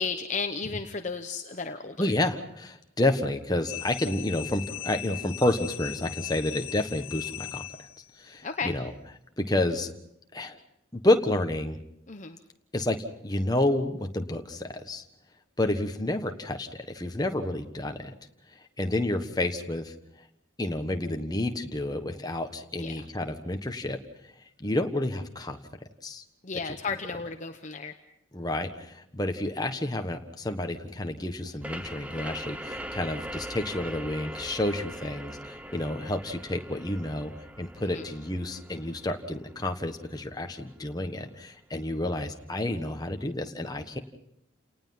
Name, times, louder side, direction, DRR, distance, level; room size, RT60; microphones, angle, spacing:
voice 1, 0.0-2.1 8.4-8.7 12.1-12.4 22.8-22.9 26.4-27.9 37.9-38.0, left 4 dB, 35° left, 6 dB, 0.9 m, -33 dB
voice 2, 2.0-7.9 8.2-8.9 9.4-9.9 10.3-10.6 10.9-11.8 12.7-13.0 13.2-15.0 15.6-18.2 18.5-19.9 20.6-24.0 24.2-25.6 26.0-26.2 26.6-26.7 28.3-37.3 37.6-44.0, left 1 dB, 20° left, 5 dB, 1.3 m, -30 dB
sound 1, 3.7-8.2, left 15 dB, 85° left, 0.8 m, -39 dB
sound 2, 31.6-41.0, right 1 dB, 5° right, 0.8 m, -41 dB
29.5 x 19.0 x 5.8 m, 0.76 s
head